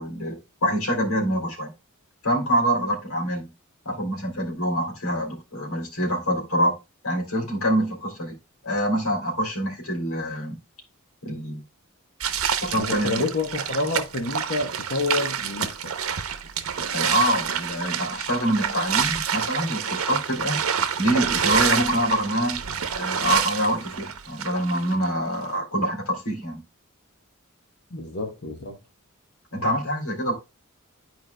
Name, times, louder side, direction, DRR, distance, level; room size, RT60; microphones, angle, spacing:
voice 1, 0.0-1.7 2.2-3.5 3.8-6.7 7.0-8.4 8.6-10.6 11.2-11.6 12.6-13.2 16.9-20.6 21.0-22.6 23.0-26.6 29.5-30.3, equal, 80° left, 2.6 m, -25 dB
sound 1, 12.2-25.1, right 7 dB, 70° right, 0.8 m, -27 dB
voice 2, 12.7-15.9 27.9-28.8, left 3 dB, 50° left, 1.0 m, -28 dB
11.5 x 4.6 x 2.2 m
head